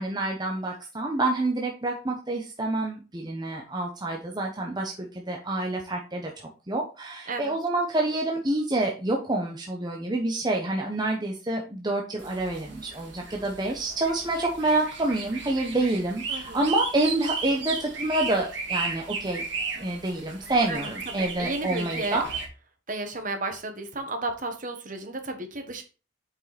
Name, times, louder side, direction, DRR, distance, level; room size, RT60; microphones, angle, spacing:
voice 1, 0.0-19.4 19.8-22.3, right 2 dB, 20° right, 0 dB, 0.9 m, -28 dB
sound 1, 12.2-22.5, right 4 dB, 60° right, 2.3 m, -35 dB
voice 2, 16.3-16.7 20.7-22.2 22.9-25.8, right 2 dB, 40° right, 5 dB, 1.4 m, -33 dB
7.7 x 5.4 x 4.2 m, 0.32 s
head